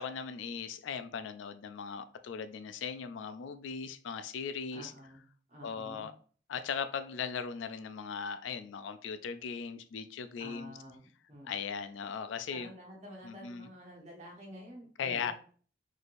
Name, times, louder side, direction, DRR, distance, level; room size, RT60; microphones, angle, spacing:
voice 1, 0.0-4.9 5.6-6.1 6.5-10.7 11.4-12.7 13.2-13.7 15.0-15.3, left 6 dB, 80° left, 0.3 m, -38 dB
voice 2, 4.7-5.2 5.5-6.0 10.4-11.0 11.3-11.5 12.5-15.3, equal, 35° right, 1.2 m, -49 dB
4.2 x 3.2 x 2.5 m
head